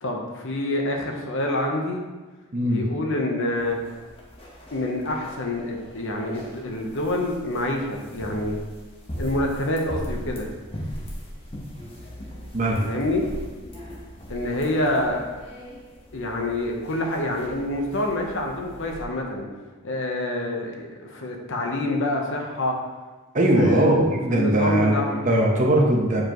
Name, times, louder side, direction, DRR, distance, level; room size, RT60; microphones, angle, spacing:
voice 1, 0.0-2.0 2.6-3.8 4.7-8.6 9.2-10.5 12.8-13.3 14.3-15.2 16.1-19.5 19.8-22.7 23.6-23.9 24.3-25.2, left 1 dB, 60° left, 1 dB, 1.0 m, -27 dB
voice 2, 2.5-2.9 12.5-12.8 23.3-25.0 25.2-26.2, right 1 dB, 35° right, -1 dB, 1.0 m, -20 dB
sound 1, 3.6-19.0, equal, 25° left, 1.2 m, -39 dB
7.4 x 4.8 x 3.1 m, 1.3 s
head